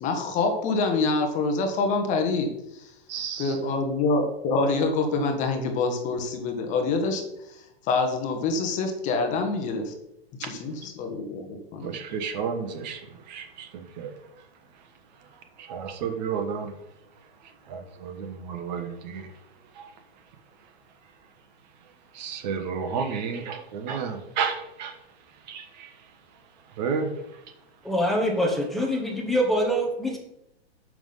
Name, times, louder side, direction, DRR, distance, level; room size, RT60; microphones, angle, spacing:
voice 1, 0.0-2.9 3.4-9.9 10.4-11.9, left 3 dB, 25° left, 5 dB, 1.2 m, -26 dB
voice 2, 3.1-3.6 10.4-10.5 11.8-14.1 15.6-16.7 17.7-19.3 19.7-19.9 22.1-25.0 25.5-25.9 26.8-27.1, right 6 dB, 45° right, 6 dB, 1.3 m, -32 dB
voice 3, 27.8-30.2, equal, ahead, -1 dB, 1.1 m, -24 dB
7.0 x 6.0 x 5.5 m, 0.82 s
hypercardioid pair, 150°, 31 cm